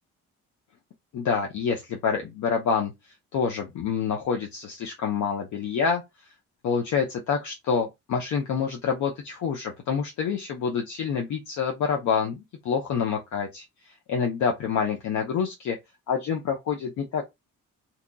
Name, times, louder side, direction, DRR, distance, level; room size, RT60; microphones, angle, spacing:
voice 1, 1.1-2.9 3.3-6.0 6.6-13.6 14.1-15.8 16.1-17.2, left 6 dB, 70° left, 0.7 m, -27 dB
2.8 x 2.2 x 3.9 m
cardioid pair, 90°, 30 cm